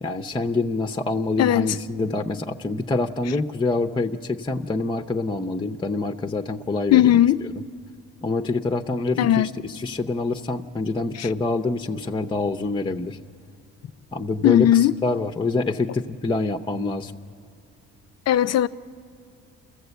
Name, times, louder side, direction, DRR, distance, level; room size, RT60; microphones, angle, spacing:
voice 1, 0.0-7.5 8.2-13.2 14.1-17.1, left 3 dB, 15° left, 0.7 m, -26 dB
voice 2, 1.4-1.7 6.9-7.4 9.2-9.5 14.4-14.9 18.3-18.7, left 12 dB, 55° left, 0.6 m, -17 dB
28.5 x 14.5 x 8.1 m
cardioid pair, 90°, 30 cm